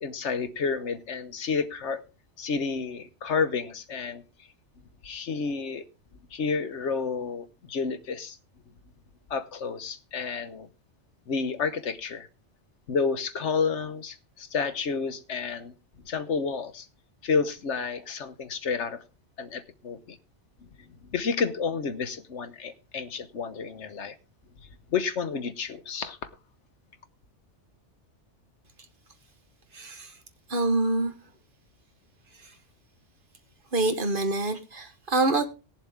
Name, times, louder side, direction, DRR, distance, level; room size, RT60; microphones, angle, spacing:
voice 1, 0.0-2.0 2.4-4.2 5.0-5.8 6.3-8.4 9.3-10.7 11.3-12.3 12.9-15.7 16.0-16.9 17.2-19.0 19.4-20.2 21.1-24.2 24.9-26.3, left 5 dB, 70° left, 1.3 m, -30 dB
voice 2, 29.7-30.1 30.5-31.1 33.7-35.5, right 2 dB, 45° right, 1.4 m, -26 dB
19.0 x 7.4 x 3.5 m
omnidirectional pair, 1.2 m